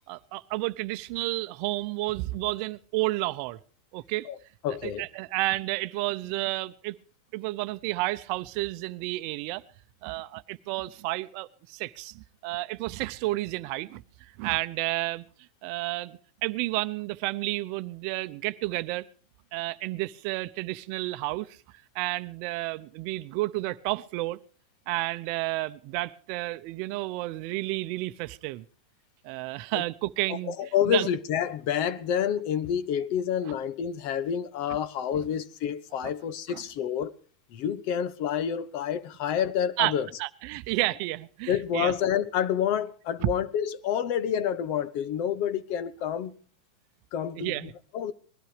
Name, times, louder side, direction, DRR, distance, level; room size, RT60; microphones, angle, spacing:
voice 1, 0.1-3.6 3.9-4.3 4.8-7.0 7.3-9.6 10.0-14.0 14.4-15.2 15.6-19.0 19.5-21.6 21.9-24.4 24.9-28.6 29.2-31.1 34.7-34.8 36.0-36.1 36.5-36.6 39.8-39.9 40.2-41.9 43.2-43.3 47.4-47.7, right 20 dB, 50° right, 0.8 m, -31 dB
voice 2, 4.6-5.0 29.7-29.8 30.5-37.1 37.5-40.1 41.5-46.3 47.1-48.1, left 9 dB, 45° left, 1.0 m, -28 dB
20.5 x 12.5 x 5.1 m
supercardioid pair, 140°, 4 cm